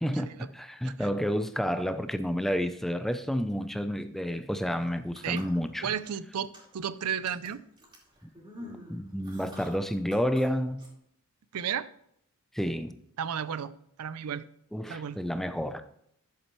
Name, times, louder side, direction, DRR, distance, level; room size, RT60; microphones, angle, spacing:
voice 1, 0.0-5.9 8.9-10.8 12.5-12.9 14.7-15.8, equal, ahead, 0.4 m, -30 dB
sound 1, 4.9-6.1 6.4-6.8 7.3-10.5 10.8-10.9, left 1 dB, 20° right, 2.7 m, -47 dB
voice 2, 5.8-7.6 11.5-11.9 13.2-13.7 14.0-14.4 14.9-15.2, right 8 dB, 85° right, 0.5 m, -33 dB
11.0 x 7.2 x 3.1 m
head